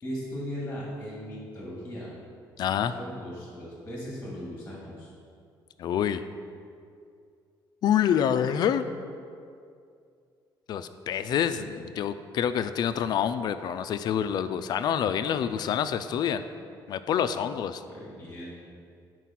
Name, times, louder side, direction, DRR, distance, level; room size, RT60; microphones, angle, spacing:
voice 1, 0.0-2.1 2.7-5.1 17.9-18.5, equal, 15° left, -5 dB, 2.3 m, -38 dB
voice 2, 2.6-2.9 5.8-6.2 7.8-8.8 10.7-16.4 16.9-17.8, left 9 dB, 55° left, 11 dB, 0.4 m, -27 dB
9.7 x 4.6 x 5.9 m, 2.3 s
cardioid pair, 155°, 9 cm